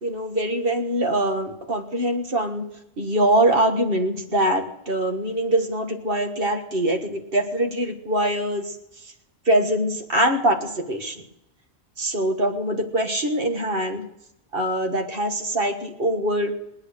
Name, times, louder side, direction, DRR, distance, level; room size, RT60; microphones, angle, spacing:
voice 1, 0.0-2.7 3.0-8.7 9.5-11.2 12.0-14.1 14.5-16.6, right 1 dB, 50° right, 3 dB, 1.8 m, -23 dB
19.5 x 10.0 x 6.6 m, 0.85 s
omnidirectional pair, 1.2 m